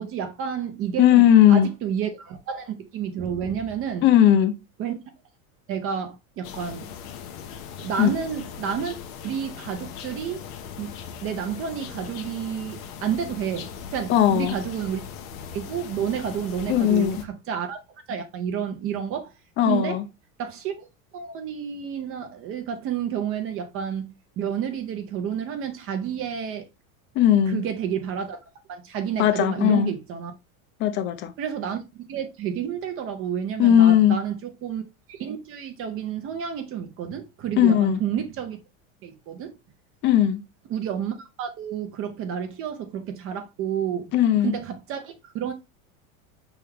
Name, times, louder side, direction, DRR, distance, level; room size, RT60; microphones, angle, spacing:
voice 1, 0.0-4.1 4.8-4.9 5.7-6.9 7.8-10.4 10.8-10.9 11.2-15.0 15.5-17.8 18.1-19.3 19.6-20.0 20.4-20.9 21.1-26.7 27.5-28.4 28.7-30.4 31.4-34.8 35.1-38.6 39.0-39.6 40.7-44.1 44.4-45.5, right 8 dB, 30° right, 0.6 m, -30 dB
voice 2, 1.0-1.7 4.0-4.6 8.0-8.1 14.1-14.5 16.7-17.2 19.6-20.0 27.2-27.6 29.2-29.9 30.8-31.3 33.6-34.2 37.6-38.0 40.0-40.4 44.1-44.6, left 10 dB, 30° left, 0.4 m, -18 dB
sound 1, 6.4-17.2, left 7 dB, 85° left, 1.0 m, -39 dB
4.4 x 3.5 x 3.4 m
supercardioid pair, 145°, 42 cm